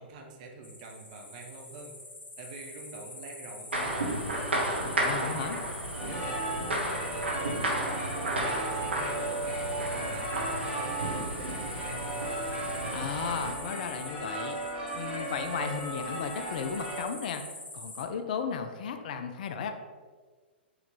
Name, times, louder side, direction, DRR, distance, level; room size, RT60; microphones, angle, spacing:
voice 1, 0.0-1.9 2.4-4.5 5.0-5.7 6.0-12.3, right 3 dB, 40° right, 1 dB, 0.7 m, -46 dB
sound 1, 0.6-18.0, left 2 dB, 75° left, 1.4 m, -44 dB
sound 2, 3.7-13.5, right 1 dB, 75° right, 1.0 m, -33 dB
voice 2, 5.0-5.6 12.9-14.6 14.9-17.4 17.7-19.7, left 6 dB, 50° left, 7 dB, 0.4 m, -35 dB
sound 3, 5.9-17.0, right 2 dB, 15° right, 1.2 m, -36 dB
4.7 x 3.1 x 3.4 m, 1.5 s
figure-of-eight pair, 110°, 6 cm